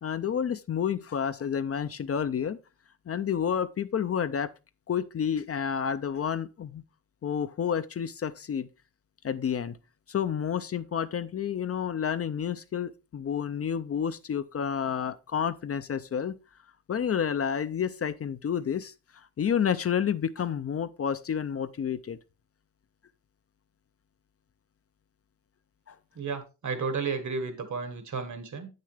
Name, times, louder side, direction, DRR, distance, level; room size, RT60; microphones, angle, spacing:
voice 1, 0.0-2.6 3.1-4.5 4.9-6.8 7.2-8.7 9.2-9.8 10.1-16.3 16.9-22.2 25.9-26.0, left 8 dB, 50° left, 0.4 m, -30 dB
voice 2, 26.1-28.7, right 5 dB, 75° right, 1.5 m, -33 dB
8.6 x 6.6 x 3.3 m
wide cardioid pair, 180°, 30 cm